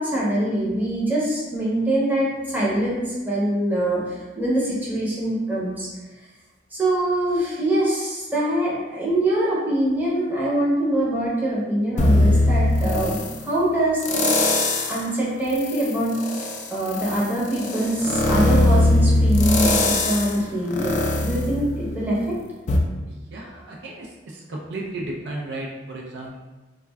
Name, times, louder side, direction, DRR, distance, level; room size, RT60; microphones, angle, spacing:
voice 1, 0.0-5.9 6.7-14.4 14.9-16.2 16.7-20.9 21.2-22.4, right 1 dB, 10° right, -7 dB, 0.7 m, -23 dB
sound 1, 12.0-13.4 14.0-15.1 15.5-22.2 22.7-22.8, left 2 dB, 40° left, 0.3 m, -21 dB
voice 2, 23.1-26.4, right 2 dB, 65° right, -1 dB, 0.4 m, -34 dB
2.3 x 2.2 x 3.2 m, 1.2 s
head